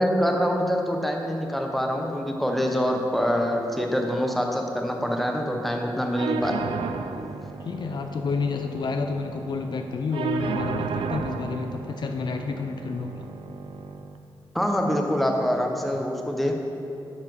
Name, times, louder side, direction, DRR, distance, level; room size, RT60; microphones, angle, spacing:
voice 1, 0.0-6.7 14.5-16.6, equal, ahead, 2 dB, 1.0 m, -25 dB
sound 1, 6.2-14.2, right 5 dB, 80° right, 0.5 m, -33 dB
voice 2, 7.6-13.3, left 4 dB, 55° left, 6 dB, 0.5 m, -30 dB
9.4 x 5.8 x 4.8 m, 2.8 s
cardioid pair, 85°, 9 cm